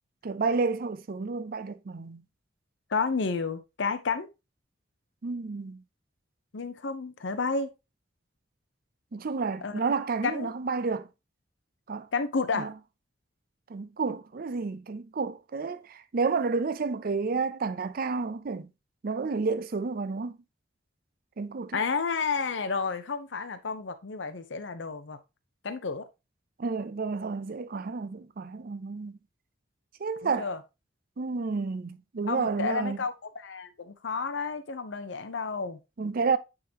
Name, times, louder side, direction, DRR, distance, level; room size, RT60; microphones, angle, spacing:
voice 1, 0.2-2.2 5.2-5.8 9.1-11.1 11.9-12.1 12.5-12.7 13.7-18.7 19.0-20.4 21.4-21.8 26.6-29.2 30.0-30.5 31.2-33.0 36.0-36.4, right 4 dB, 50° right, 0.5 m, -30 dB
voice 2, 2.9-4.3 6.5-7.7 9.6-9.8 10.2-10.5 12.1-12.7 21.7-25.2 25.6-26.1 30.2-30.6 32.3-35.8, left 4 dB, 80° left, 0.7 m, -31 dB
8.8 x 3.8 x 2.8 m
head